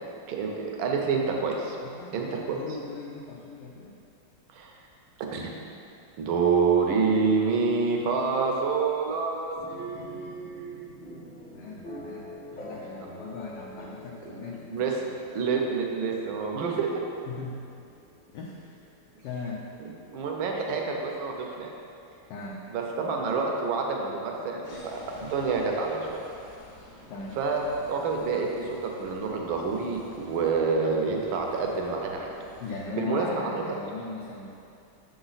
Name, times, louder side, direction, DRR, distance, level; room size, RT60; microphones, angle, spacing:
voice 1, 0.3-1.8 2.1-2.6 4.5-4.8 5.3-5.5 6.2-10.8 14.7-15.0 15.3-17.0 19.8-21.7 22.7-26.2 27.4-32.3 32.9-33.6, right 4 dB, 75° right, 1 dB, 1.4 m, -28 dB
voice 2, 1.8-4.0 11.4-14.7 17.3-17.9 18.3-18.8 19.2-19.7 22.3-22.7 27.1-27.4 32.6-34.6, left 4 dB, 75° left, -2 dB, 1.0 m, -38 dB
sound 1, 9.6-23.3, left 1 dB, 30° left, 0.8 m, -47 dB
sound 2, 24.6-32.9, left 1 dB, 45° left, 1.2 m, -50 dB
6.8 x 3.9 x 4.0 m, 2.6 s
omnidirectional pair, 2.3 m